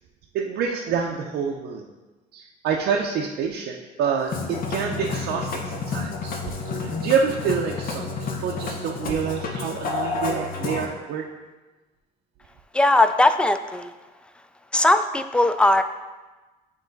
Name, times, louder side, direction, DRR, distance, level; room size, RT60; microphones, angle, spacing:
voice 1, 0.3-1.9 2.3-6.3 6.8-11.2, right 6 dB, 75° right, 0 dB, 0.5 m, -27 dB
Musical instrument, 4.2-10.9, left 4 dB, 60° left, 0.9 m, -30 dB
voice 2, 12.7-13.9 14.7-15.8, left 2 dB, 5° left, 9 dB, 0.3 m, -19 dB
9.0 x 3.0 x 3.9 m, 1.2 s
cardioid pair, 110°, 17 cm